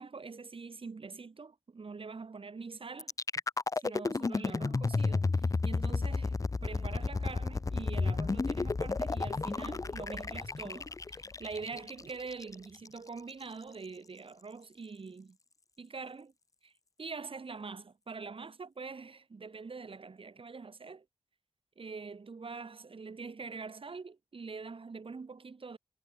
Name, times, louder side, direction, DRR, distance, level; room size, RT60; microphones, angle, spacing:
voice 1, 0.0-3.1 3.8-15.4 15.8-16.3 16.6-16.7 17.0-21.1 21.8-25.8, right 4 dB, 60° right, 7.2 m, -44 dB
sound 1, 3.0-13.0, left 3 dB, 35° left, 0.6 m, -32 dB
cardioid pair, 60°, 10 cm